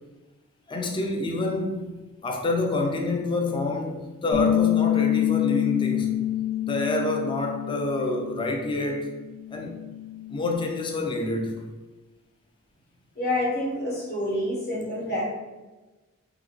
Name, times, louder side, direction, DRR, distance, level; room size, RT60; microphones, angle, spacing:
voice 1, 0.7-1.9 2.2-6.1 6.6-9.1 9.5-9.8 10.3-11.6, left 2 dB, 20° left, 0.4 m, -27 dB
Bass guitar, 4.3-10.6, left 11 dB, 65° left, 1.1 m, -27 dB
voice 2, 13.1-15.2, left 1 dB, 45° left, 1.3 m, -27 dB
3.4 x 2.7 x 3.5 m
head